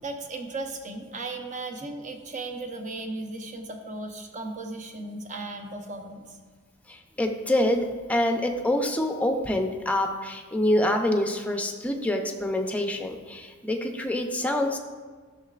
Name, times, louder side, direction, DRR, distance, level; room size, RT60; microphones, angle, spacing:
voice 1, 0.0-6.4, right 2 dB, 35° right, 4 dB, 0.8 m, -36 dB
voice 2, 6.9-14.8, left 1 dB, 5° left, 3 dB, 0.6 m, -26 dB
12.0 x 6.7 x 2.4 m, 1.5 s
head